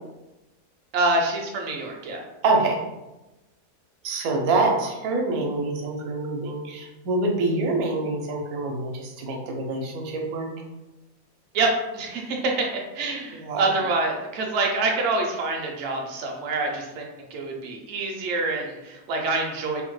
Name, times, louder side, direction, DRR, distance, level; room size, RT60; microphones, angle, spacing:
voice 1, 0.9-2.2 11.5-19.8, right 2 dB, 65° right, 1 dB, 0.8 m, -26 dB
voice 2, 2.4-2.8 4.0-10.5 13.4-13.6, right 2 dB, 85° right, 1 dB, 1.1 m, -25 dB
3.5 x 2.1 x 3.0 m, 1.0 s
omnidirectional pair, 1.5 m